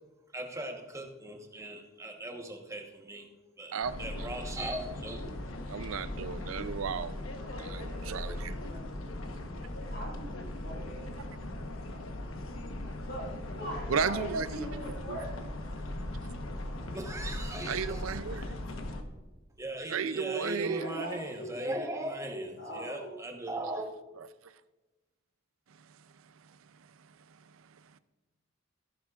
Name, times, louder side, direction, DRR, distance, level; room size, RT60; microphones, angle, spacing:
voice 1, 0.3-3.3 3.6-5.3 16.9-18.0 19.6-23.9, right 1 dB, 15° right, 1.2 m, -38 dB
voice 2, 3.7-4.3 5.7-7.2 7.6-8.5 13.9-14.8 15.1-15.2 17.7-18.6 19.9-20.9, right 6 dB, 85° right, 0.5 m, -34 dB
sound 1, 3.8-19.0, left 1 dB, 85° left, 1.1 m, -39 dB
voice 3, 7.2-9.3 9.8-11.1 11.8-12.0 13.0-15.3 20.7-21.6 22.6-23.1, right 1 dB, 65° left, 3.0 m, -42 dB
14.0 x 11.0 x 2.5 m
head